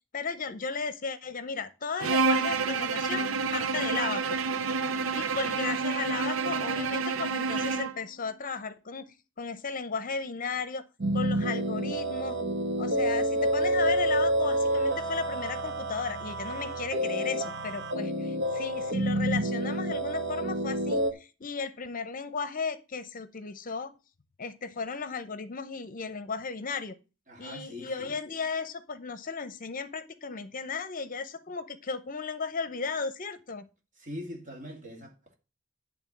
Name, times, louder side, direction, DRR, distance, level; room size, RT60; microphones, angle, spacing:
voice 1, 0.1-4.4 5.1-10.8 11.1-12.4 12.8-23.9 24.4-26.9 27.4-33.7, left 5 dB, 40° left, 0.7 m, -35 dB
Bowed string instrument, 2.0-8.0, right 4 dB, 85° right, 0.7 m, -28 dB
sound 1, 11.0-21.1, right 1 dB, 60° right, 1.4 m, -29 dB
voice 2, 27.3-28.1 34.0-35.3, equal, 40° right, 2.3 m, -42 dB
10.5 x 3.6 x 7.2 m
head